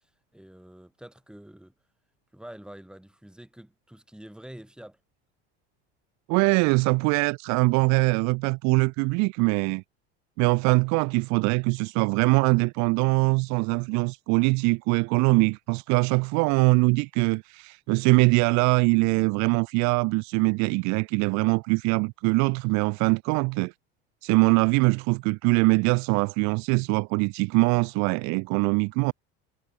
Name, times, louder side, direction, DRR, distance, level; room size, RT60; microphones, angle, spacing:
voice 1, 0.3-1.7 2.3-5.0, right 1 dB, 5° right, 4.5 m, -46 dB
voice 2, 6.3-9.8 10.4-23.7 24.2-29.1, right 30 dB, 60° right, 0.5 m, -22 dB
supercardioid pair, 95°, 32 cm